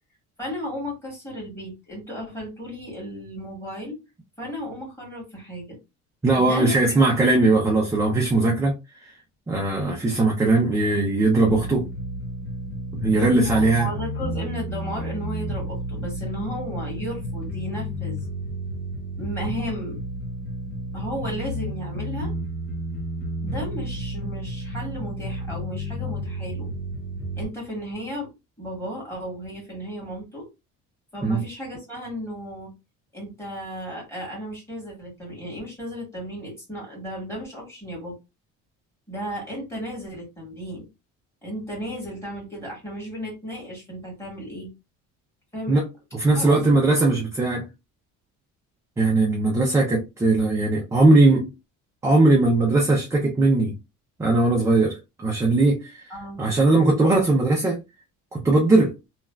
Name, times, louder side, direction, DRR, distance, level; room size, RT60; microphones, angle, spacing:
voice 1, 0.4-4.0 4.4-5.8 6.4-6.9 13.4-18.2 19.2-20.0 20.9-22.3 23.4-26.7 27.4-28.3 28.6-30.5 31.1-32.7 33.1-38.2 39.1-40.8 41.4-44.7 45.5-45.8 46.4-46.7 56.1-56.4, equal, 10° left, 1.7 m, -34 dB
voice 2, 6.2-9.1 9.5-11.9 12.9-13.9 31.2-31.4 45.7-45.9 46.1-47.7 49.0-51.5 52.0-53.8 54.2-57.8 58.3-59.0, right 2 dB, 10° right, 0.4 m, -20 dB
sound 1, 11.4-27.4, equal, 80° left, 1.2 m, -31 dB
3.1 x 2.4 x 2.2 m
cardioid pair, 170°, 33 cm